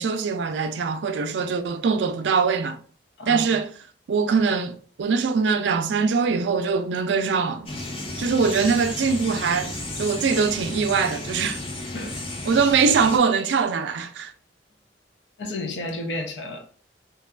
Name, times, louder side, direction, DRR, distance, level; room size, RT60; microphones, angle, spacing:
voice 1, 0.0-2.8 3.3-3.7 4.1-7.8 8.2-11.6 12.5-14.3, right 5 dB, 80° right, 0.4 m, -22 dB
voice 2, 3.2-3.6 11.9-12.2 15.4-16.6, left 2 dB, 80° left, 0.6 m, -32 dB
sound 1, 7.7-13.2, left 2 dB, 30° left, 0.5 m, -33 dB
2.8 x 2.3 x 2.3 m
head